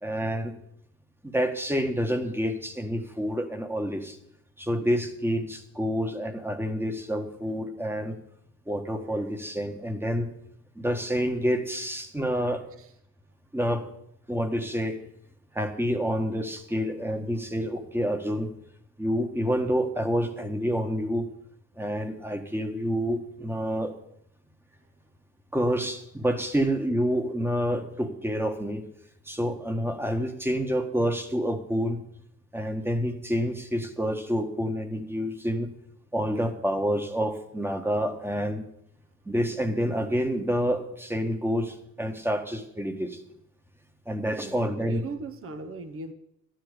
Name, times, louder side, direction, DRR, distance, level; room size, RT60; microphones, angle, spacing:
voice 1, 0.0-0.5 1.2-4.2 4.6-8.2 8.7-10.3 10.7-12.6 13.5-13.8 14.3-15.0 15.5-18.5 19.0-21.3 21.8-23.9 25.5-28.8 29.3-32.0 32.5-35.7 36.1-38.6 39.3-43.2 44.0-45.0, equal, 5° right, 6 dB, 1.5 m, -28 dB
voice 2, 44.3-46.1, right 3 dB, 45° right, 9 dB, 1.2 m, -39 dB
12.5 x 10.5 x 5.1 m, 0.74 s
cardioid pair, 90°, 30 cm